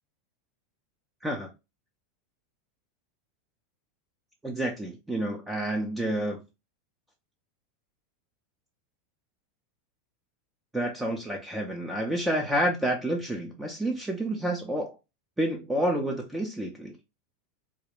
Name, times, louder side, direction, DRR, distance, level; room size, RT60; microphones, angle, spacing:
voice 1, 4.4-6.4 10.7-15.0 15.4-17.0, right 1 dB, 5° right, 0.4 m, -29 dB
2.3 x 2.0 x 2.9 m
supercardioid pair, 145°, 0 cm